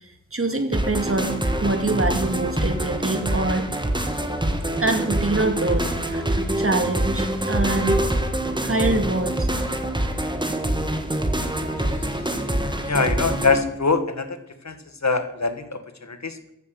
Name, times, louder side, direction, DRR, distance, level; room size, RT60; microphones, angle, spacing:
voice 1, 0.0-1.3 1.6-3.7 4.7-6.2 6.6-8.0 8.5-9.5, right 2 dB, 45° right, 5 dB, 2.4 m, -25 dB
sound 1, 0.7-13.6, right 1 dB, 15° right, 1.8 m, -25 dB
voice 2, 12.8-14.4 14.6-14.8 15.0-16.5, left 4 dB, 65° left, 9 dB, 1.6 m, -23 dB
14.5 x 10.5 x 6.4 m, 0.86 s
wide cardioid pair, 65°, 30 cm